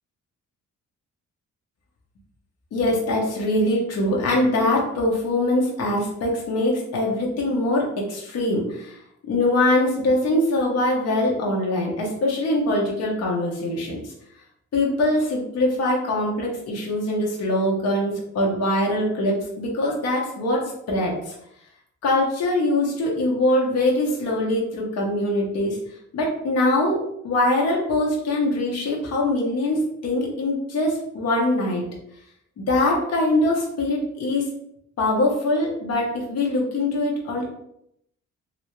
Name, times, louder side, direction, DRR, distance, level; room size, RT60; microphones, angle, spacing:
voice 1, 2.7-9.0 9.3-14.0 14.7-21.3 22.0-25.8 26.1-27.0 27.2-31.8 32.7-34.5 35.0-37.5, left 1 dB, 60° left, -2 dB, 0.8 m, -23 dB
3.3 x 2.5 x 3.0 m, 0.76 s
wide cardioid pair, 165°, 29 cm